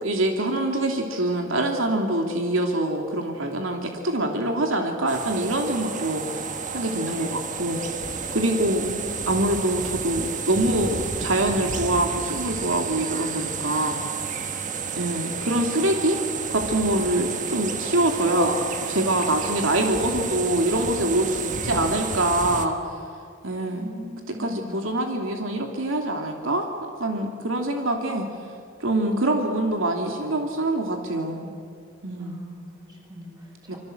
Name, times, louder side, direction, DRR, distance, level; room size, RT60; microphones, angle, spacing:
voice 1, 0.0-6.5 6.7-7.8 8.3-8.9 9.3-14.0 15.0-16.2 16.5-22.8 23.4-23.9 24.4-26.7 27.0-28.3 28.8-31.5 32.0-32.5 33.7-33.8, right 1 dB, 85° right, 3 dB, 2.8 m, -25 dB
sound 1, 5.1-22.7, right 5 dB, 40° right, 1.6 m, -31 dB
voice 2, 8.5-9.4 23.7-24.8 32.2-33.8, left 1 dB, 20° right, -2 dB, 7.1 m, -40 dB
26.5 x 24.5 x 7.9 m, 2.3 s
head